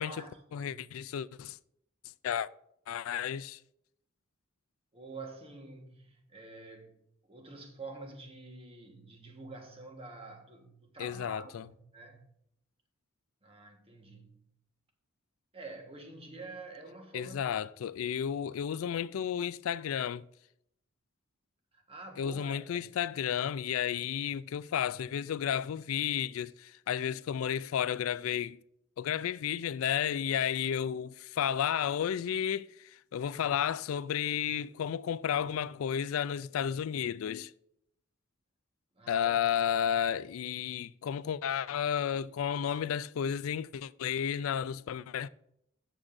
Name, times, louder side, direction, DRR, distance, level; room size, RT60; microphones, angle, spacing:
voice 1, 0.0-0.8 4.9-7.0 7.3-12.3 13.4-14.5 15.5-17.4 21.7-22.9 39.0-39.3 39.7-39.8, right 3 dB, 30° right, 1.3 m, -48 dB
voice 2, 0.5-1.6 2.2-2.5 2.9-3.6 11.0-11.7 17.1-20.3 22.2-28.6 29.0-37.5 39.1-45.3, left 8 dB, 90° left, 0.3 m, -32 dB
12.5 x 7.3 x 2.6 m
head